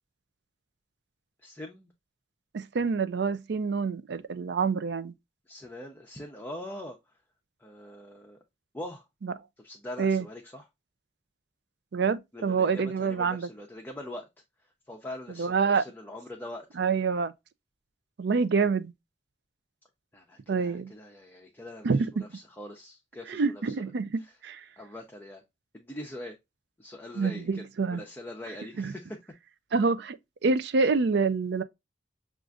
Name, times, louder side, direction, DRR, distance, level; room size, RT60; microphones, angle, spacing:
voice 1, 1.4-1.9 5.5-7.0 7.6-8.4 8.7-9.1 9.6-10.7 12.3-14.3 14.9-16.7 20.1-23.7 24.8-25.4 25.7-26.4 26.8-29.2, left 1 dB, 10° left, 0.6 m, -42 dB
voice 2, 2.5-5.1 9.2-9.3 10.0-10.2 11.9-13.5 15.4-15.8 16.8-17.3 18.2-18.9 20.5-20.9 21.8-22.2 23.3-24.6 27.2-28.0 28.8-28.9 29.7-30.2 30.4-31.6, right 4 dB, 70° right, 0.4 m, -27 dB
6.2 x 2.5 x 2.3 m
head